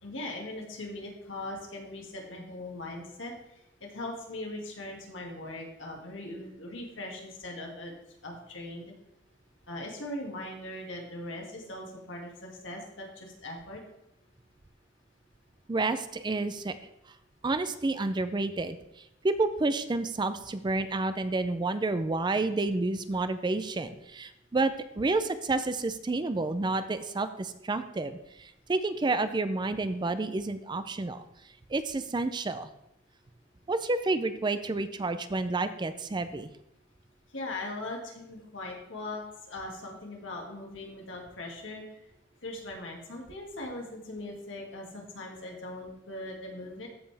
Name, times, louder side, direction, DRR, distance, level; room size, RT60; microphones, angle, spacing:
voice 1, 0.0-7.9 8.2-8.9 9.7-13.8 37.3-41.8 42.4-46.9, left 2 dB, 75° left, 0 dB, 2.1 m, -40 dB
voice 2, 15.7-16.8 17.4-18.8 19.2-31.2 31.7-32.7 33.7-36.5, right 3 dB, 25° right, 11 dB, 0.4 m, -30 dB
14.0 x 5.4 x 3.4 m, 0.85 s
head